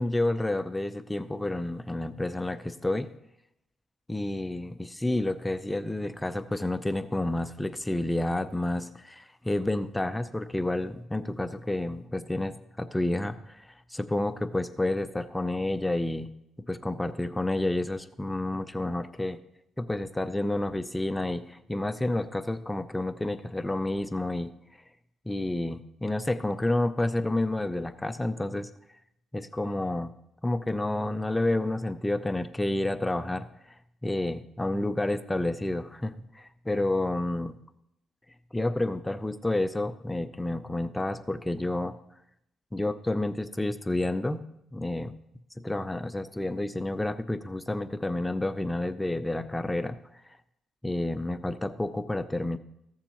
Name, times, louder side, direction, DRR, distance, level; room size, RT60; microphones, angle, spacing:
voice 1, 0.0-3.1 4.1-16.3 16.7-19.4 19.8-24.5 25.3-28.7 29.3-30.1 30.4-33.8 34.0-37.6 38.5-41.9 42.7-44.4 44.7-45.2 45.6-50.0 50.8-52.6, left 1 dB, 10° left, 12 dB, 0.5 m, -30 dB
15.0 x 7.1 x 2.9 m, 0.80 s
cardioid pair, 90°, 0 cm